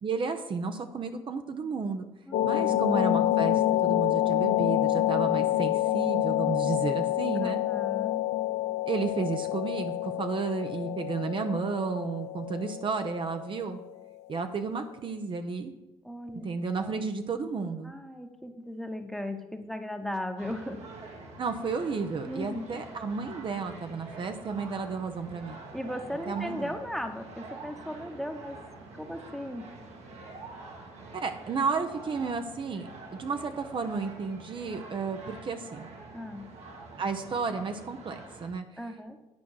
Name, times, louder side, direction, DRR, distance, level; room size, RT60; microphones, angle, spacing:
voice 1, 0.0-2.0 2.4-7.6 8.9-13.8 14.3-15.7 16.4-17.9 21.4-25.6 26.3-26.7 31.1-32.9 33.2-35.9 37.0-38.6, right 5 dB, 45° right, 7 dB, 0.8 m, -32 dB
sound 1, 2.3-13.8, left 14 dB, 75° left, 0.6 m, -27 dB
voice 2, 2.3-2.8 7.3-8.1 16.0-16.5 16.8-17.0 17.8-20.8 22.3-22.8 25.7-28.6 28.9-29.7 36.1-36.5 38.8-39.2, left 1 dB, ahead, 6 dB, 1.1 m, -37 dB
sound 2, 20.4-38.5, right 3 dB, 65° right, 1.8 m, -46 dB
9.7 x 4.7 x 6.3 m, 0.98 s
supercardioid pair, 65°, 12 cm